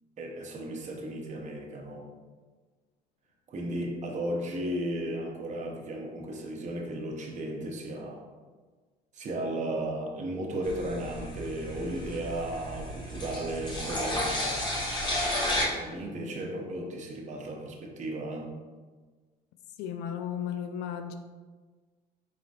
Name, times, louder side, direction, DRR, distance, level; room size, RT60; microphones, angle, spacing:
voice 1, 0.2-2.1 3.5-8.2 9.1-14.6 15.7-18.5, right 1 dB, 45° right, 0.8 m, -35 dB
sound 1, 10.6-15.7, left 1 dB, 25° left, 1.1 m, -32 dB
voice 2, 19.8-21.2, left 8 dB, 85° left, 0.4 m, -34 dB
4.3 x 3.8 x 2.5 m
cardioid pair, 110°, 17 cm